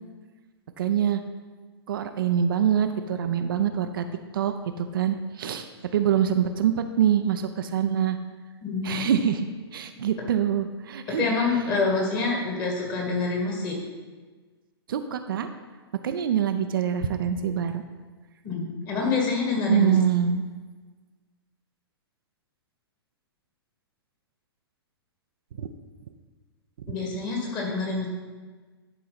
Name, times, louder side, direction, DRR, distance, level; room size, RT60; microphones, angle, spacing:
voice 1, 0.8-1.2 1.9-4.0 4.3-8.2 8.8-9.5 9.7-11.2 14.9-15.5 16.0-17.8 19.7-20.4 25.6-25.7, right 9 dB, 55° right, 8 dB, 0.5 m, -25 dB
voice 2, 8.6-9.1 11.2-13.8 18.4-20.0 26.9-28.1, left 4 dB, 30° left, -1 dB, 2.1 m, -26 dB
11.0 x 4.6 x 4.1 m, 1.4 s
figure-of-eight pair, 115°, 14 cm